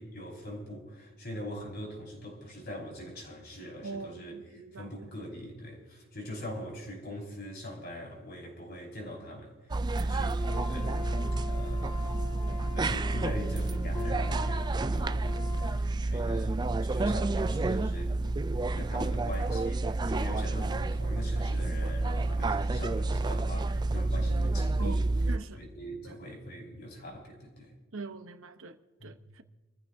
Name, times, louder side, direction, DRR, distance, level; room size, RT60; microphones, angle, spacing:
voice 1, 0.0-11.1 11.4-12.2 12.7-25.1 25.5-27.8 29.0-29.1, equal, 50° left, 5.3 m, -42 dB
voice 2, 3.8-5.1 9.9-10.3 24.8-25.0 25.3-25.6 26.0-26.2 27.9-29.4, right 3 dB, 75° right, 0.9 m, -43 dB
sound 1, 9.7-25.4, right 2 dB, 20° right, 0.3 m, -29 dB
sound 2, 10.4-15.8, left 6 dB, 15° left, 4.9 m, -43 dB
27.5 x 14.5 x 2.7 m
head